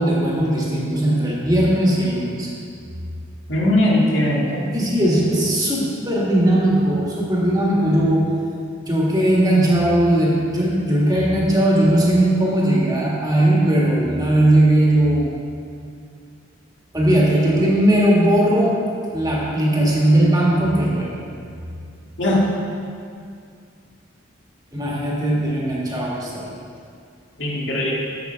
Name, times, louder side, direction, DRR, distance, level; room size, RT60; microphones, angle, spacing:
voice 1, 0.0-2.5 4.7-8.3 8.9-15.3 16.9-18.8 19.1-21.2 24.7-26.5, right 1 dB, 20° right, -5 dB, 1.7 m, -18 dB
voice 2, 3.5-4.6 22.2-22.5 27.4-27.9, left 1 dB, 70° left, -4 dB, 1.9 m, -19 dB
7.9 x 7.6 x 5.6 m, 2.3 s
head